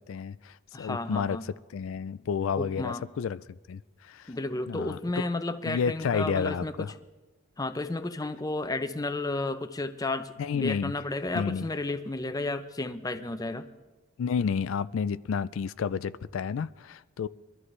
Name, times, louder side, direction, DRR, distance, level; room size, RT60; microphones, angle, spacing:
voice 1, 0.0-3.4 3.7-4.3 4.7-5.3 5.7-6.9 10.4-10.9 11.3-11.7 14.2-17.3, left 6 dB, 80° left, 0.4 m, -31 dB
voice 2, 0.7-1.4 2.6-3.0 4.3-6.9 7.6-13.7, left 2 dB, 20° left, 0.6 m, -32 dB
23.0 x 13.5 x 3.3 m
head